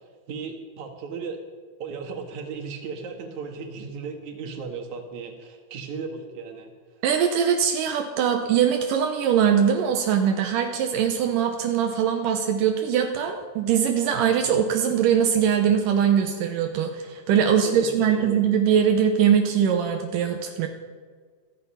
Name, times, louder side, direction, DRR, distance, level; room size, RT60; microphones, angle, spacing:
voice 1, 0.3-1.4 1.8-6.7 17.4-18.4, right 5 dB, 65° right, 4 dB, 3.1 m, -35 dB
voice 2, 7.0-20.7, right 8 dB, 85° right, 4 dB, 2.7 m, -22 dB
17.0 x 15.0 x 5.7 m, 1.5 s
omnidirectional pair, 3.8 m